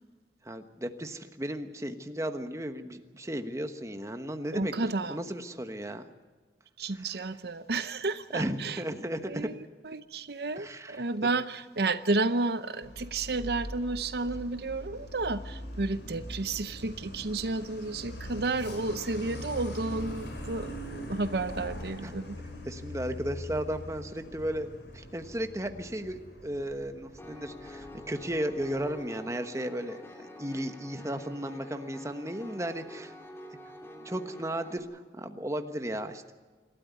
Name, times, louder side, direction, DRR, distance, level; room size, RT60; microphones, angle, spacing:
voice 1, 0.4-6.0 6.9-7.3 8.3-9.5 10.6-11.0 22.0-22.1 22.6-24.7 24.9-33.1 34.0-36.3, right 1 dB, 15° right, 1.2 m, -35 dB
voice 2, 4.5-5.2 6.8-8.8 9.3-9.6 9.8-22.4, right 3 dB, 60° right, 0.7 m, -32 dB
Truck, 12.8-29.0, equal, 85° left, 4.7 m, -42 dB
Piano, 27.2-34.8, left 1 dB, 15° left, 2.7 m, -47 dB
27.0 x 13.0 x 9.4 m
head